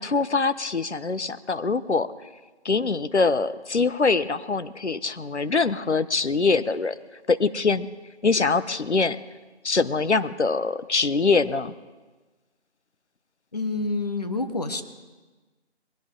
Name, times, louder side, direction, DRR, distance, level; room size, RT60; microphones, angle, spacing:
voice 1, 0.0-2.1 2.6-6.9 7.3-7.9 8.2-9.2 9.6-11.7, left 4 dB, 80° left, 14 dB, 1.0 m, -23 dB
voice 2, 13.5-14.8, left 3 dB, 35° left, 7 dB, 1.2 m, -28 dB
21.5 x 17.0 x 3.8 m, 1.3 s
figure-of-eight pair, 170°, 34 cm